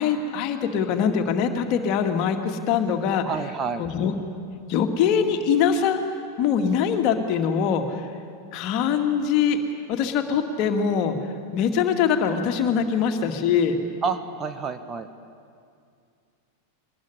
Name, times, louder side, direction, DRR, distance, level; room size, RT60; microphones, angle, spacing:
voice 1, 0.0-3.3 3.8-4.1 4.7-6.0 6.4-8.1 8.5-9.6 9.9-11.2 11.5-13.8, left 7 dB, 40° left, 5 dB, 2.3 m, -23 dB
voice 2, 3.2-3.8 14.0-15.1, right 5 dB, 25° right, 9 dB, 1.2 m, -29 dB
22.5 x 20.5 x 10.0 m, 2.3 s
figure-of-eight pair, 90°, 0 cm